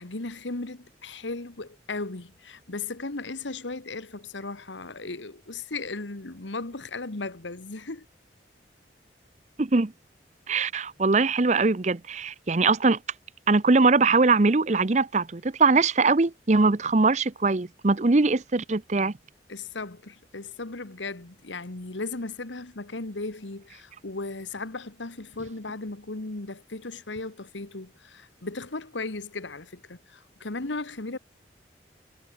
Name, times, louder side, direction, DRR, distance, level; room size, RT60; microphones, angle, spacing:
voice 1, 0.0-8.0 19.5-31.2, left 3 dB, 90° left, 1.6 m, -36 dB
voice 2, 9.6-9.9 10.5-13.0 13.5-19.1, right 3 dB, 40° right, 0.7 m, -22 dB
head